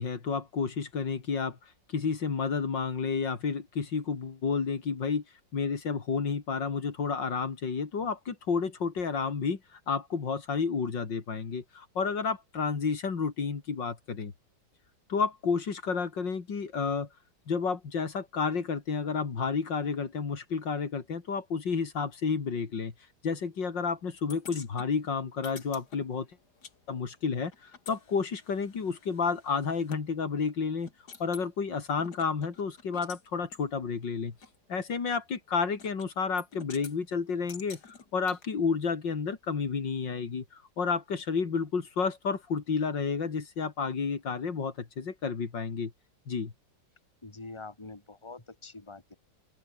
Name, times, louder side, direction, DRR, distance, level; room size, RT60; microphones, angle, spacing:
voice 1, 0.0-1.6 1.9-5.2 5.5-14.3 15.1-17.1 17.5-22.9 23.2-26.3 26.9-30.9 31.2-34.3 34.7-45.9 46.3-46.5, left 5 dB, 80° left, 3.3 m, -31 dB
sound 1, 24.3-26.8 27.0-30.0 30.5-30.6 30.9-31.5 32.0-33.2 33.5-33.6 34.4-34.5 35.8-36.1 36.4-37.0 37.5-38.5, left 5 dB, 65° left, 3.0 m, -49 dB
voice 2, 47.2-49.1, left 3 dB, 15° left, 2.5 m, -45 dB
open air
omnidirectional pair, 2.0 m